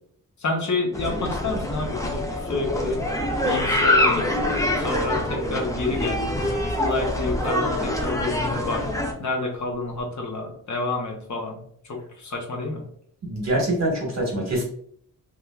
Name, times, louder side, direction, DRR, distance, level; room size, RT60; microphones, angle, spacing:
voice 1, 0.4-3.1 3.4-4.3 4.8-6.3 6.8-8.9 9.2-11.6 11.9-12.8, left 3 dB, 55° left, 0 dB, 0.8 m, -29 dB
sound 1, 0.9-9.1, left 1 dB, 10° left, 0.3 m, -25 dB
Plucked string instrument, 3.8-5.8 6.4-9.2 9.5-9.6 10.0-10.1, left 1 dB, 5° right, 0.8 m, -34 dB
voice 2, 13.2-14.6, right 1 dB, 45° right, 0 dB, 1.1 m, -24 dB
3.1 x 2.4 x 2.3 m, 0.62 s
wide cardioid pair, 135°, 36 cm